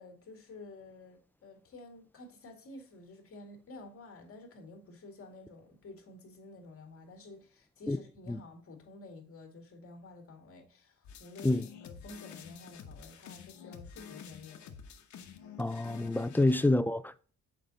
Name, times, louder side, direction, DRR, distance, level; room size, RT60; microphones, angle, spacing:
voice 1, 0.0-14.7 16.2-16.4, left 2 dB, 50° left, 2.1 m, -51 dB
sound 1, 11.0-16.7, left 7 dB, 70° left, 1.1 m, -49 dB
voice 2, 15.6-17.3, left 2 dB, 5° left, 0.3 m, -28 dB
6.5 x 5.1 x 4.0 m
cardioid pair, 90°, 30 cm